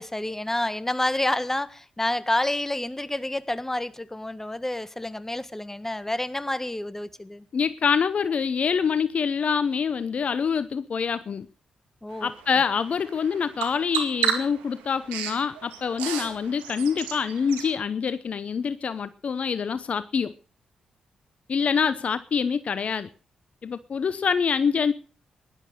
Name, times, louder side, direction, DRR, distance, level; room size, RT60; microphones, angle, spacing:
voice 1, 0.0-7.4 12.0-12.3, left 1 dB, 15° left, 1.6 m, -29 dB
voice 2, 7.5-11.5 12.2-20.3 21.5-23.1 23.6-24.9, left 6 dB, 60° left, 0.7 m, -25 dB
Bird vocalization bird call bird song, 12.1-17.7, right 9 dB, 90° right, 2.0 m, -33 dB
16.5 x 11.5 x 6.5 m
hypercardioid pair, 40°, 3 cm